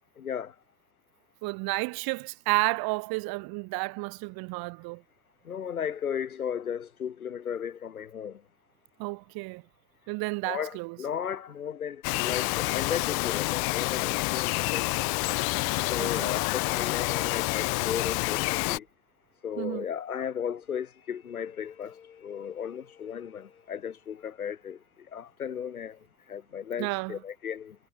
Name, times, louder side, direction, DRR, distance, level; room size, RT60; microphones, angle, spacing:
voice 1, 0.2-0.5 5.5-8.4 10.5-15.4 15.9-18.9 19.4-24.8 25.1-26.0 26.3-27.8, left 8 dB, 80° left, 7.2 m, -35 dB
voice 2, 1.4-5.0 9.0-9.6 10.1-11.0 16.0-16.3 19.6-19.9 26.8-27.2, right 26 dB, 55° right, 4.6 m, -31 dB
Bird vocalization bird call bird song, 12.0-18.8, left 28 dB, 55° left, 3.8 m, -28 dB
figure-of-eight pair, 65°, 43 cm